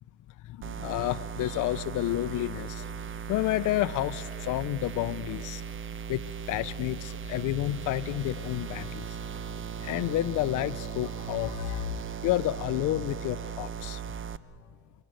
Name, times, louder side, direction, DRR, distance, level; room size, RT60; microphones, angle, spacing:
voice 1, 0.6-2.9 3.3-5.6 6.1-6.2 6.5-9.1 9.8-11.9 12.2-14.0, left 16 dB, 90° left, 14 dB, 0.6 m, -30 dB
sound 1, 0.6-14.4, right 7 dB, 40° right, 0.9 m, -38 dB
25.0 x 24.5 x 7.6 m, 2.1 s
cardioid pair, 90°, 30 cm